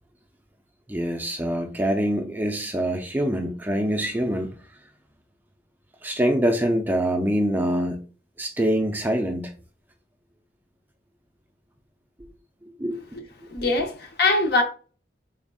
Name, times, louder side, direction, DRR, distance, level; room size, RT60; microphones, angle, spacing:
voice 1, 0.9-4.5 6.0-8.0 8.4-9.5 12.6-13.0, equal, 10° right, 0.4 m, -25 dB
voice 2, 13.5-14.6, left 2 dB, 55° left, 0.8 m, -22 dB
3.7 x 3.4 x 2.3 m
head